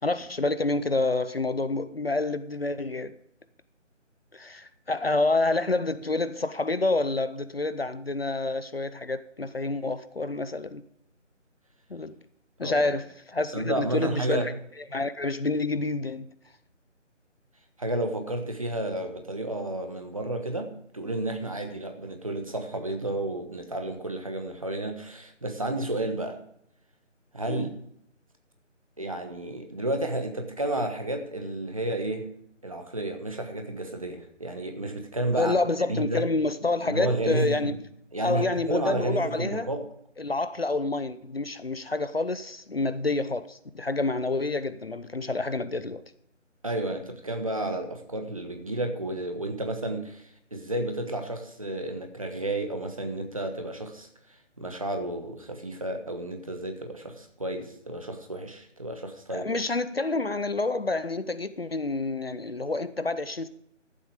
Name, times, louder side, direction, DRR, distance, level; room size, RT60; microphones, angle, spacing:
voice 1, 0.0-3.1 4.3-10.8 11.9-12.1 12.6-14.5 14.9-16.3 27.5-27.7 35.3-37.8 38.2-39.7 40.2-46.0 59.3-63.5, left 2 dB, 50° left, 0.7 m, -28 dB
voice 2, 13.5-14.5 17.8-26.4 27.3-27.7 29.0-32.3 32.6-35.5 35.9-36.3 36.8-37.7 38.1-39.8 46.6-59.5, right 1 dB, 30° right, 1.2 m, -31 dB
13.5 x 7.8 x 5.1 m
figure-of-eight pair, 160°, 37 cm